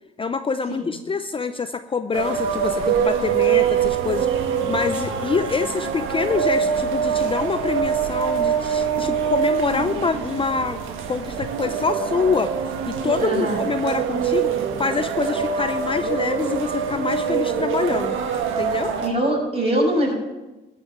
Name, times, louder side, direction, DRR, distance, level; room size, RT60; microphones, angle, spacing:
voice 1, 0.2-10.8 11.1-12.5 12.9-18.2 18.6-18.9, left 5 dB, 25° left, 10 dB, 0.5 m, -25 dB
sound 1, 2.1-19.1, right 7 dB, 90° right, 1.4 m, -24 dB
voice 2, 13.2-13.6 19.0-20.1, right 1 dB, 30° right, -2 dB, 5.9 m, -22 dB
14.0 x 6.2 x 8.8 m, 1.1 s
cardioid pair, 90°, 20 cm